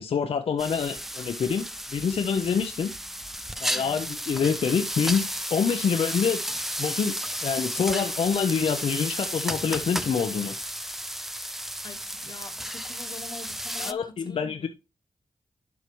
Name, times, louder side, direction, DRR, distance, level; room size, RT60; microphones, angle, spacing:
voice 1, 0.0-1.6 1.9-2.9 3.6-6.4 6.8-7.1 7.4-10.5 13.8-14.7, left 6 dB, 80° left, 0.6 m, -26 dB
sound 1, 0.6-13.9, equal, 5° right, 0.4 m, -33 dB
voice 2, 11.8-14.7, left 3 dB, 50° left, 1.1 m, -44 dB
11.0 x 4.6 x 3.0 m
wide cardioid pair, 85°, 10 cm